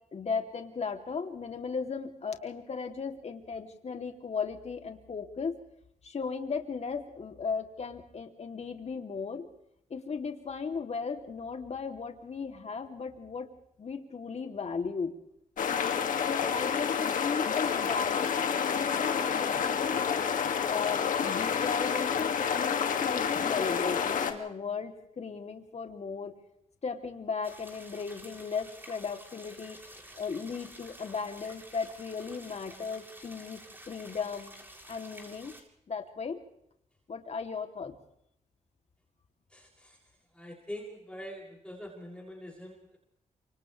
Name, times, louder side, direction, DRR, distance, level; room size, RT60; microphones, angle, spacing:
voice 1, 0.1-5.6 6.0-9.5 9.9-13.5 13.8-15.1 16.2-20.2 20.7-26.4 26.8-29.8 30.2-34.5 34.9-35.5 35.9-36.4 37.1-37.9, left 5 dB, 55° left, 4 dB, 3.0 m, -36 dB
sound 1, 15.6-24.3, left 7 dB, 80° left, 2.3 m, -29 dB
sound 2, 27.4-35.6, right 1 dB, 15° right, 7.2 m, -50 dB
voice 2, 39.5-40.0 40.3-43.0, equal, 5° left, -3 dB, 7.0 m, -44 dB
29.0 x 26.5 x 3.4 m, 0.74 s
cardioid pair, 70°, 13 cm